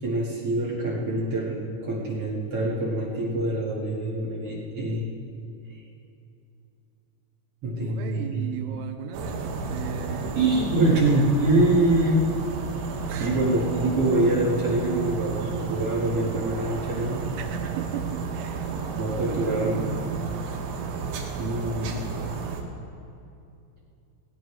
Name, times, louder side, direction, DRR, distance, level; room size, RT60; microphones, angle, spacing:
voice 1, 0.0-5.1 7.6-8.5 10.3-12.2 13.2-17.3 18.9-19.9 21.4-22.0, right 2 dB, 50° right, -5 dB, 1.8 m, -25 dB
voice 2, 7.8-10.5 10.9-11.3 13.1-13.4 17.4-20.4, right 8 dB, 90° right, 6 dB, 3.5 m, -37 dB
sound 1, 9.1-22.6, right 5 dB, 70° right, 3.2 m, -32 dB
19.0 x 17.0 x 3.4 m, 2.6 s
omnidirectional pair, 6.0 m